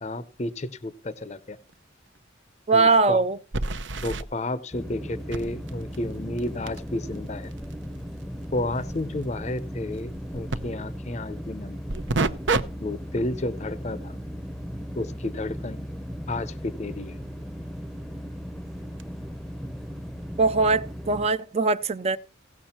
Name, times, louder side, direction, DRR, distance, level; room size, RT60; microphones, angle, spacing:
voice 1, 0.0-1.6 2.7-3.2 4.0-7.5 8.5-11.8 12.8-14.2 15.0-15.8 16.3-17.2, left 2 dB, 35° left, 0.6 m, -32 dB
sound 1, 1.7-1.8 2.1-2.2 3.5-4.2 5.3-10.6 11.9-12.6 13.1-13.3 18.0-18.1 19.0-19.1, right 3 dB, 75° right, 0.8 m, -31 dB
voice 2, 2.7-3.4 20.4-22.2, right 3 dB, 35° right, 0.5 m, -21 dB
sound 2, 4.7-21.3, equal, ahead, 0.7 m, -37 dB
17.5 x 6.3 x 4.3 m
head